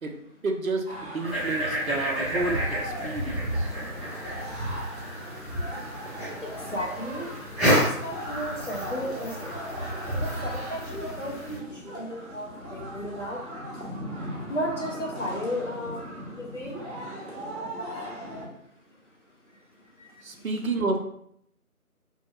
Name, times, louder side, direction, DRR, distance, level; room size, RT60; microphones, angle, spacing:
voice 1, 0.4-3.7 20.2-21.0, right 3 dB, 70° right, 4 dB, 0.5 m, -30 dB
sound 1, 0.9-18.5, equal, 45° right, 1.0 m, -39 dB
sound 2, 1.2-11.6, equal, ahead, 0.8 m, -30 dB
voice 2, 6.4-7.3 7.7-9.5 10.2-11.6 11.8-13.4 14.5-16.0 16.3-16.8 20.0-20.1, equal, 55° left, -1 dB, 0.7 m, -34 dB
2.7 x 2.7 x 2.3 m, 0.70 s
figure-of-eight pair, 175°, 44 cm